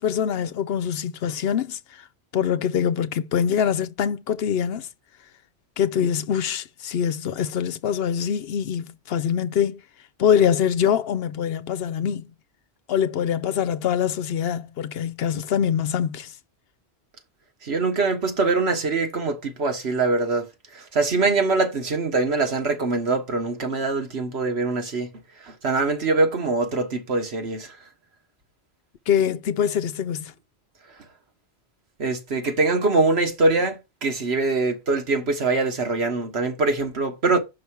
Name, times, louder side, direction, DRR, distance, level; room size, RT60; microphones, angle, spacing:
voice 1, 0.0-1.8 2.3-4.9 5.8-9.8 10.2-12.3 12.9-16.3 29.1-30.3, left 8 dB, 70° left, 0.8 m, -24 dB
voice 2, 17.6-20.5 20.7-25.1 25.4-27.8 32.0-37.4, right 3 dB, 80° right, 1.7 m, -23 dB
6.8 x 5.6 x 4.7 m
omnidirectional pair, 1.1 m